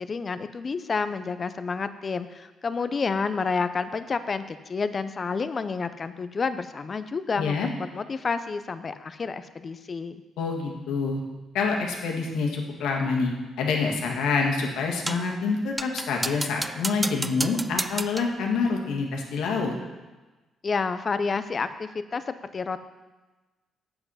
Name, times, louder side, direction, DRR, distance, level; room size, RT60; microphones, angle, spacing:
voice 1, 0.0-7.6 7.9-10.2 20.6-22.8, left 4 dB, 40° left, 12 dB, 0.6 m, -29 dB
voice 2, 7.4-7.7 10.4-11.2 11.5-13.3 13.6-19.7, left 4 dB, 85° left, 1 dB, 1.7 m, -26 dB
sound 1, 15.1-15.3 15.8-18.4, right 2 dB, 15° right, 0.3 m, -32 dB
8.0 x 7.8 x 5.6 m, 1.2 s
cardioid pair, 90°, 0 cm